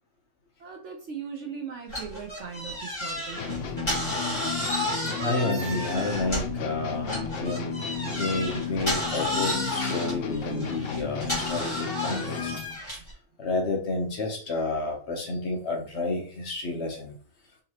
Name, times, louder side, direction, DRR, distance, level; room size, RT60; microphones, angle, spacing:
voice 1, 0.6-4.0 12.7-13.1, right 6 dB, 65° right, 3 dB, 0.8 m, -40 dB
sound 1, 1.9-6.6 7.1-13.1, left 1 dB, 20° left, 1.5 m, -32 dB
sound 2, 3.4-12.8, left 6 dB, 70° left, 0.5 m, -33 dB
voice 2, 5.0-7.8 8.0-12.5 13.4-17.1, left 2 dB, 55° left, 1 dB, 1.0 m, -30 dB
3.7 x 2.9 x 2.9 m, 0.40 s
omnidirectional pair, 1.5 m